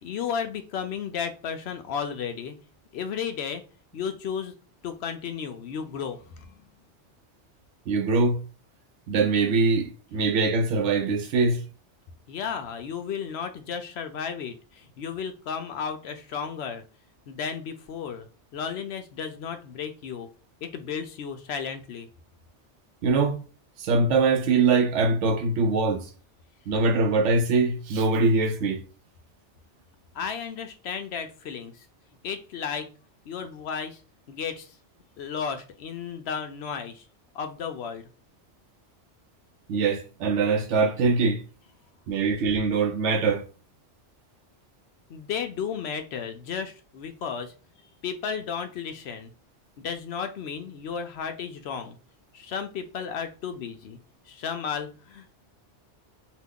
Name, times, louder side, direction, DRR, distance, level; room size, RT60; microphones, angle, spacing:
voice 1, 0.0-2.6 2.9-3.6 3.9-4.5 4.8-6.6 12.3-16.8 17.3-18.3 18.5-20.3 20.6-22.1 30.1-31.9 32.2-32.9 33.3-34.0 34.3-34.8 35.2-37.0 37.3-38.1 45.1-47.5 48.0-49.3 49.8-52.0 52.3-54.0 54.3-55.3, left 7 dB, 70° left, 0.8 m, -33 dB
voice 2, 7.9-8.4 9.1-11.6 23.0-23.4 23.8-26.1 26.7-28.8 39.7-41.4 42.1-43.4, right 4 dB, 85° right, 0.9 m, -23 dB
2.9 x 2.3 x 3.6 m
omnidirectional pair, 1.2 m